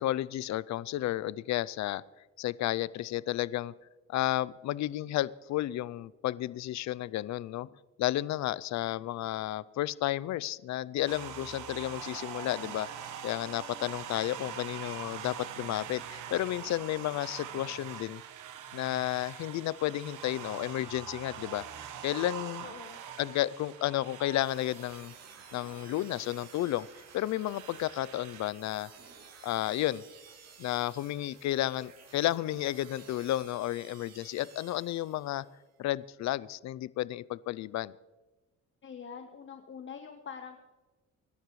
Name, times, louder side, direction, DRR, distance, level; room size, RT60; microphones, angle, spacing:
voice 1, 0.0-2.0 2.4-3.7 4.1-7.7 8.0-18.2 18.7-21.6 22.0-22.7 23.2-25.1 25.5-26.9 27.1-28.9 29.4-30.0 30.6-35.4 35.8-37.9, left 14 dB, 65° left, 20 dB, 0.5 m, -32 dB
sound 1, 11.1-28.5, right 9 dB, 85° right, 1.3 m, -44 dB
voice 2, 22.6-23.0 38.8-40.6, left 6 dB, 40° left, 6 dB, 1.1 m, -44 dB
sound 2, 24.4-35.6, right 6 dB, 55° right, 2.4 m, -54 dB
25.0 x 11.5 x 3.2 m, 1.2 s
cardioid pair, 90°, 30 cm